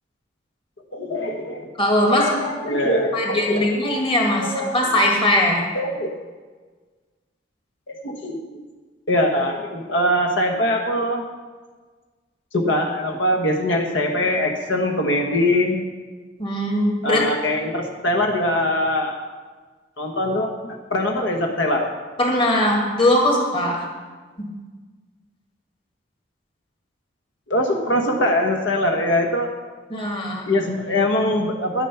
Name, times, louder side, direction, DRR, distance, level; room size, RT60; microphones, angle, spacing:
voice 1, 0.9-1.7 2.1-4.0 4.4-4.8 5.7-6.1 8.0-8.6 9.1-11.2 12.5-15.8 17.0-19.2 20.0-21.9 27.5-29.5 30.5-31.9, left 1 dB, 70° left, 2 dB, 1.2 m, -22 dB
voice 2, 1.8-2.4 2.7-2.8 3.1-5.7 16.4-17.3 22.2-23.9 24.4-24.5 29.9-30.5, left 1 dB, 25° left, 0 dB, 1.9 m, -20 dB
11.0 x 9.1 x 5.7 m, 1.4 s
head